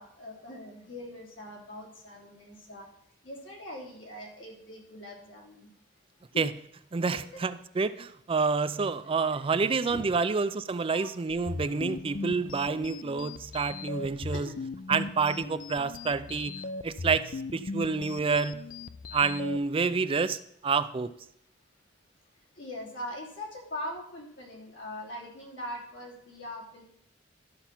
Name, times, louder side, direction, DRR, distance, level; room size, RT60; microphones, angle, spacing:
voice 1, 0.0-2.9 3.2-5.7 6.3-6.4 7.1-7.4 9.9-10.0 10.9-11.1 14.3-14.5 22.5-26.8, left 1 dB, 85° left, -2 dB, 3.0 m, -41 dB
voice 2, 6.9-14.5 14.9-18.7 19.1-21.1, right 4 dB, 30° right, 13 dB, 0.4 m, -28 dB
sound 1, 11.3-19.6, left 3 dB, 45° left, 0.4 m, -39 dB
12.5 x 5.7 x 5.8 m, 0.71 s
head